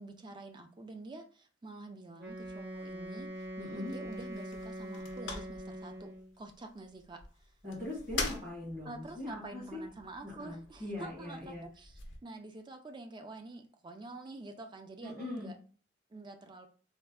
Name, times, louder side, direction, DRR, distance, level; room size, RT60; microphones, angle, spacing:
voice 1, 0.0-6.1 6.4-7.2 8.8-15.6 16.1-16.7, right 2 dB, 25° right, 5 dB, 0.3 m, -47 dB
sound 1, 2.2-12.2, left 3 dB, 75° left, 0.7 m, -45 dB
Wind instrument woodwind instrument, 2.2-6.3, equal, 75° right, 0.7 m, -43 dB
voice 2, 3.6-3.9 7.6-9.8 10.2-11.6 15.0-15.5, left 2 dB, 40° right, -7 dB, 1.3 m, -41 dB
3.5 x 2.0 x 2.3 m, 0.42 s
head